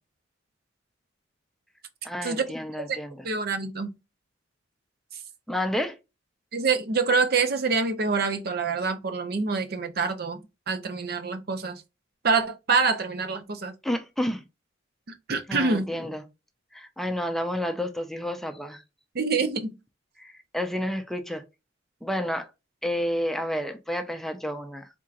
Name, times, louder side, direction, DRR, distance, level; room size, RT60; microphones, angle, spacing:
voice 1, 2.0-3.2 5.5-6.0 13.8-14.4 15.5-16.2 16.7-18.8 20.2-21.4 22.0-22.5 22.8-24.9, equal, ahead, 0.5 m, -30 dB
voice 2, 3.2-3.9 6.5-11.8 12.2-13.7 15.3-15.9 19.1-19.8, right 4 dB, 55° right, 0.7 m, -26 dB
4.4 x 3.6 x 2.5 m
head